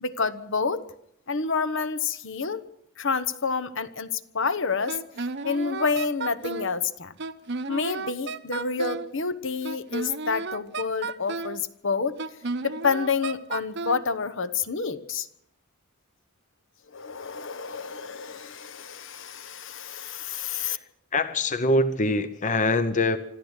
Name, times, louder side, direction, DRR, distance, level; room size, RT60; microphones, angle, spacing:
voice 1, 0.0-0.8 1.3-2.6 3.0-5.0 5.4-7.1 7.7-12.2 12.6-15.3 16.9-20.8, left 5 dB, 60° left, 12 dB, 1.1 m, -28 dB
Wind instrument woodwind instrument, 4.9-6.7 7.2-9.1 9.6-11.6 12.2-14.0, right 3 dB, 50° right, 0.9 m, -33 dB
voice 2, 21.1-23.2, left 2 dB, 35° left, 11 dB, 0.9 m, -24 dB
26.0 x 13.5 x 8.1 m, 0.75 s
head